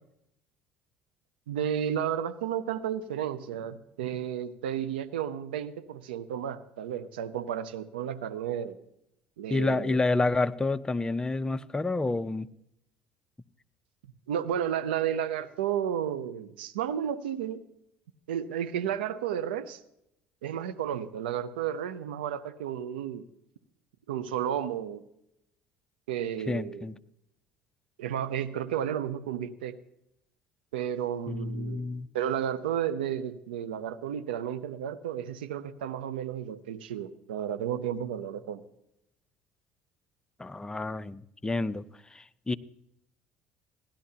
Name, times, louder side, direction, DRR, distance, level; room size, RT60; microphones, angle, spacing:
voice 1, 1.5-8.8 9.4-10.0 14.3-17.7 18.3-19.8 20.4-23.2 24.1-25.0 26.1-26.9 28.0-29.7 30.7-38.6, right 9 dB, 90° right, 13 dB, 0.7 m, -32 dB
voice 2, 9.5-12.5 26.5-26.9 31.3-32.1 40.4-41.8 42.1-42.6, left 2 dB, 15° left, 12 dB, 0.6 m, -29 dB
16.5 x 11.5 x 2.8 m, 0.79 s
hypercardioid pair, 70°, 5 cm